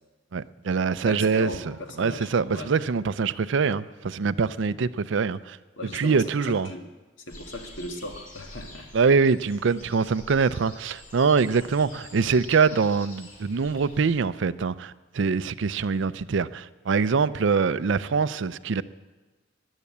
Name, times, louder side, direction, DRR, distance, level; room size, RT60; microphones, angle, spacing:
voice 1, 0.3-1.5 2.0-5.6 5.9-6.7 8.9-18.8, right 5 dB, 65° right, 16 dB, 0.5 m, -24 dB
voice 2, 1.0-2.7 5.8-6.9 7.3-8.9, left 1 dB, 70° left, 4 dB, 1.9 m, -37 dB
sound 1, 7.3-14.1, left 1 dB, 45° left, 3.4 m, -47 dB
14.0 x 11.5 x 8.5 m, 1.2 s
head